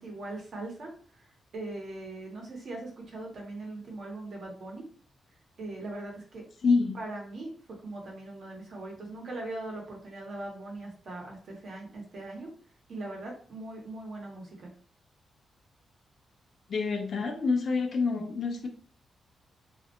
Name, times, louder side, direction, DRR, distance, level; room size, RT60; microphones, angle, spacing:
voice 1, 0.0-4.8 5.6-6.4 6.9-12.5 12.9-14.7, right 2 dB, 55° right, -1 dB, 0.9 m, -40 dB
voice 2, 6.6-7.0 16.7-18.7, left 4 dB, 45° left, 3 dB, 0.4 m, -27 dB
2.4 x 2.1 x 2.8 m, 0.42 s
wide cardioid pair, 155°, 0 cm